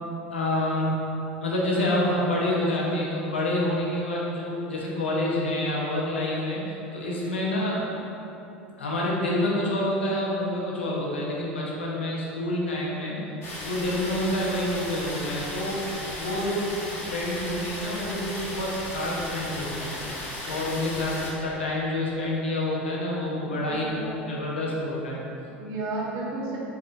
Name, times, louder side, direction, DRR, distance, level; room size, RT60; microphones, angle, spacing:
voice 1, 0.3-0.9 1.4-7.9 8.8-13.2 13.6-19.9 20.4-23.8 24.3-25.2, left 1 dB, 85° left, -4 dB, 0.7 m, -28 dB
sound 1, 13.4-21.3, left 1 dB, 45° left, 1.1 m, -35 dB
voice 2, 23.5-24.2 25.3-26.6, right 2 dB, 60° right, -5 dB, 1.0 m, -33 dB
4.3 x 3.7 x 2.4 m, 2.9 s
hypercardioid pair, 75°, 6 cm